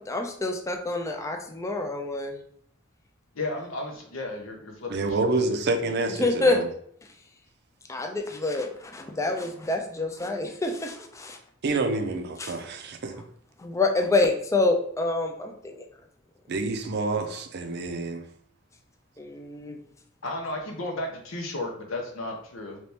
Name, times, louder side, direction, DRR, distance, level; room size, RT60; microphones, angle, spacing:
voice 1, 0.1-2.4 6.2-6.6 7.9-11.4 12.4-12.6 13.6-15.8 19.2-19.8, left 2 dB, 15° left, 4 dB, 0.3 m, -27 dB
voice 2, 3.3-5.5 20.2-22.8, left 2 dB, 80° left, 1 dB, 0.9 m, -34 dB
voice 3, 4.9-6.7 11.6-13.1 16.5-18.2, right 3 dB, 55° right, 6 dB, 0.5 m, -28 dB
3.0 x 2.8 x 3.3 m, 0.65 s
head